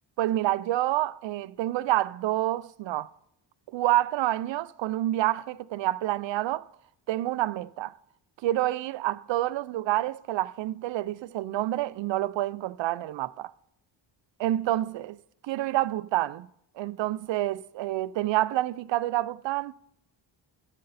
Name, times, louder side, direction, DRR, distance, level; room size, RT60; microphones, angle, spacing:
voice 1, 0.2-3.1 3.7-6.7 7.1-7.9 8.4-13.4 14.4-15.2 15.4-16.5 16.8-19.7, right 15 dB, 70° right, 0.5 m, -28 dB
14.5 x 5.3 x 4.1 m
cardioid pair, 105°, 46 cm